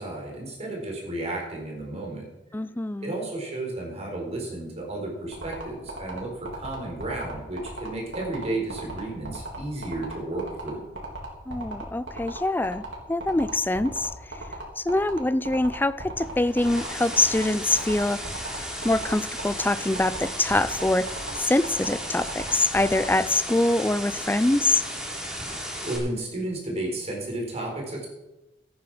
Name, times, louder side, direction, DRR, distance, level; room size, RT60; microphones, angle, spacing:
voice 1, 0.0-2.3 3.0-10.8 25.8-28.1, right 2 dB, 35° right, -1 dB, 4.4 m, -33 dB
voice 2, 2.5-3.1 11.5-14.1 14.8-18.2 18.5-21.1 21.4-24.8, left 2 dB, 10° left, 15 dB, 0.4 m, -24 dB
sound 1, 5.3-23.1, right 3 dB, 90° right, 3.9 m, -36 dB
sound 2, 16.2-26.0, equal, 5° right, 3.1 m, -35 dB
14.0 x 9.6 x 6.2 m, 1.0 s
head